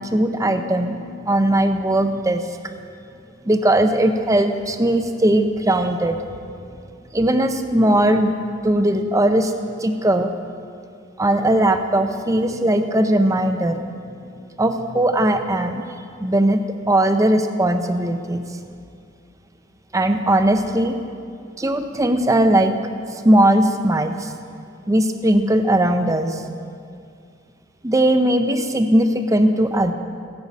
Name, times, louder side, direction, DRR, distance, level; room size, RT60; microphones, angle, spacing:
voice 1, 0.0-2.4 3.5-6.2 7.1-8.3 8.6-9.5 9.8-10.3 11.2-15.8 16.2-18.4 19.9-21.0 21.6-22.7 23.1-24.3 24.9-26.4 27.8-29.9, right 1 dB, 15° right, 7 dB, 0.7 m, -19 dB
16.0 x 6.9 x 8.3 m, 2.4 s
head